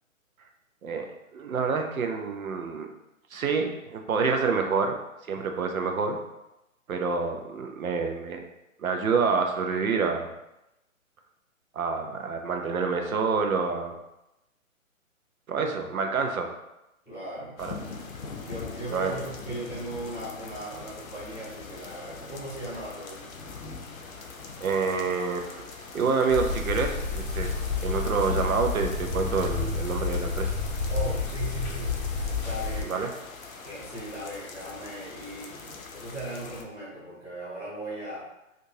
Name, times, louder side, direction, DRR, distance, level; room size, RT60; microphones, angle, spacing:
voice 1, 0.8-2.9 3.3-5.0 5.3-6.2 6.9-8.5 8.8-10.3 11.7-13.9 15.5-16.5 17.6-17.8 18.9-19.1 24.6-25.6 25.9-27.5 27.8-30.5 32.9-33.1, right 5 dB, 85° right, 4 dB, 0.7 m, -27 dB
voice 2, 17.1-17.5 18.4-23.2 30.9-32.0 32.2-33.1 33.6-38.3, right 2 dB, 5° right, -12 dB, 0.7 m, -38 dB
sound 1, 17.6-36.6, left 4 dB, 85° left, 0.7 m, -43 dB
sound 2, 26.3-32.8, left 4 dB, 35° left, 0.6 m, -30 dB
3.6 x 2.6 x 2.7 m, 0.92 s
hypercardioid pair, 140°, 41 cm